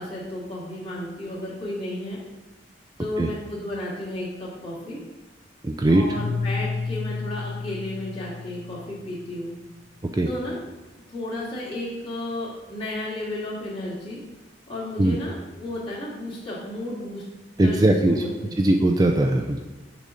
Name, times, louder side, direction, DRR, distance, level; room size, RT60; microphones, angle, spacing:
voice 1, 0.0-2.2 3.0-5.0 5.9-9.5 10.2-10.6 11.1-14.2 14.7-17.2 17.6-18.6, left 1 dB, 30° left, -7 dB, 2.4 m, -33 dB
voice 2, 5.6-6.0 10.1-10.3 15.0-15.2 17.6-18.2 18.6-19.6, right 1 dB, 20° right, 3 dB, 0.4 m, -20 dB
Keyboard (musical), 6.1-9.2, left 4 dB, 55° left, 0.7 m, -31 dB
6.4 x 4.0 x 6.3 m, 1.2 s
head